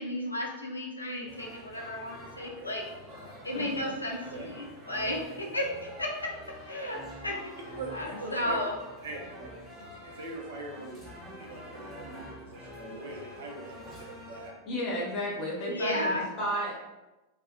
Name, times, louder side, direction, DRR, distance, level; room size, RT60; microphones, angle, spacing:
voice 1, 0.0-2.8 3.4-6.3 6.7-7.4 7.7-8.7 15.7-16.3, left 1 dB, 80° left, -1 dB, 0.4 m, -33 dB
sound 1, 1.3-14.5, equal, 10° right, 0.8 m, -46 dB
voice 2, 3.5-3.9 14.7-16.8, equal, 35° left, -4 dB, 0.8 m, -33 dB
voice 3, 7.8-8.6 9.0-9.5 10.0-11.0 11.4-14.6, right 2 dB, 60° right, 0 dB, 0.5 m, -42 dB
2.2 x 2.0 x 2.7 m, 1.1 s
figure-of-eight pair, 90°, 0 cm